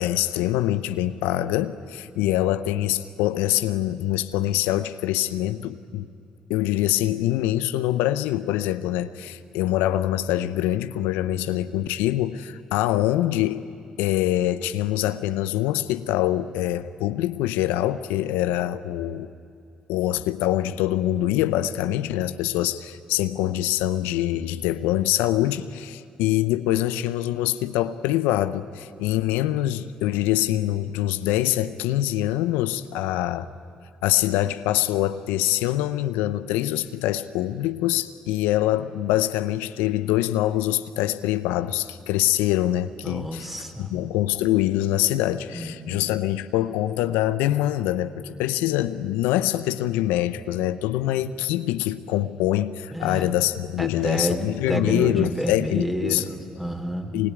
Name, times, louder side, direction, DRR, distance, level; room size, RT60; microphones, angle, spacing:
voice 1, 0.0-6.1 6.5-13.7 14.0-19.3 19.9-33.5 34.0-43.5 43.8-56.2 57.1-57.3, left 14 dB, 85° left, 0.7 m, -24 dB
voice 2, 43.0-44.1 45.5-46.1 52.9-53.3 53.8-57.2, equal, 5° right, 3.9 m, -29 dB
24.5 x 22.5 x 9.5 m
hypercardioid pair, 55°, 3 cm